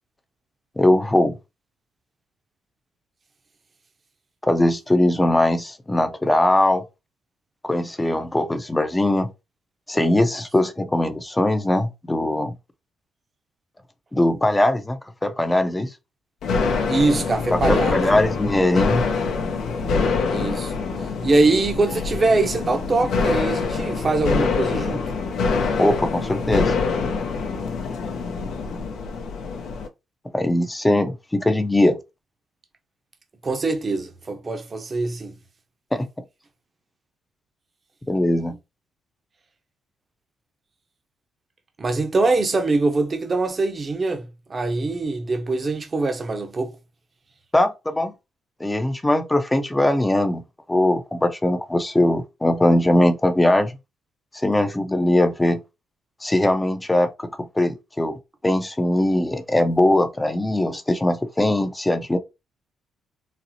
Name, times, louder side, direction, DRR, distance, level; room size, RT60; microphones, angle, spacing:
voice 1, 0.8-1.4 4.4-6.8 7.6-9.3 9.9-12.5 14.1-15.9 17.5-19.1 25.8-26.7 30.3-32.0 35.9-36.1 38.1-38.6 47.5-48.1 48.6-50.4 50.7-53.8 54.3-55.6 56.2-58.2 58.4-62.2, left 1 dB, 10° left, 0.5 m, -20 dB
sound 1, 16.4-29.9, left 4 dB, 75° left, 0.6 m, -25 dB
voice 2, 16.9-18.2 20.3-20.7 21.2-25.1 33.4-35.3 41.8-46.8, right 3 dB, 35° right, 0.7 m, -23 dB
4.0 x 2.0 x 2.7 m
cardioid pair, 90°, 0 cm